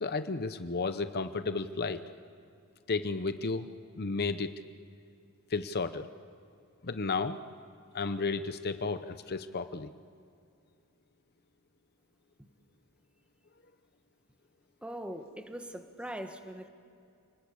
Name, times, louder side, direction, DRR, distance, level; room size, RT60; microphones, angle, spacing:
voice 1, 0.0-2.0 2.9-3.7 4.0-4.5 5.5-6.1 6.8-7.4 7.9-9.9, left 4 dB, 45° left, 11 dB, 0.8 m, -33 dB
voice 2, 14.8-16.7, right 1 dB, 5° right, 6 dB, 1.4 m, -41 dB
29.0 x 20.0 x 8.5 m, 2.5 s
head